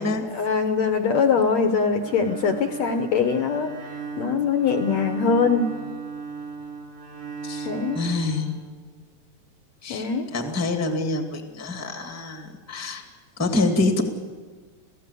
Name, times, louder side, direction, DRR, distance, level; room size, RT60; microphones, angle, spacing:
voice 1, 0.3-3.7 4.2-5.7 7.7-8.0 9.9-10.3, left 5 dB, 65° left, 6 dB, 2.0 m, -22 dB
Bowed string instrument, 2.0-9.1, right 5 dB, 75° right, 5.8 m, -36 dB
voice 2, 7.9-8.6 9.8-13.0 13.4-14.0, left 2 dB, 5° left, 5 dB, 1.5 m, -26 dB
28.5 x 17.0 x 8.4 m, 1.5 s
omnidirectional pair, 4.1 m